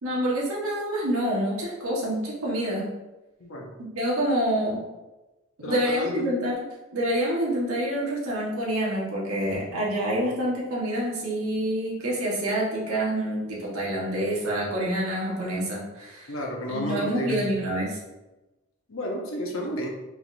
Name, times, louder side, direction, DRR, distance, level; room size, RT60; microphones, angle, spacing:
voice 1, 0.0-2.9 3.8-4.8 5.6-6.5 6.9-16.3 16.7-18.0, right 1 dB, 85° right, -5 dB, 1.3 m, -27 dB
voice 2, 3.4-3.7 5.6-6.4 16.3-17.5 18.9-19.9, equal, 70° left, 0 dB, 0.9 m, -32 dB
4.6 x 3.6 x 2.7 m, 1.1 s
head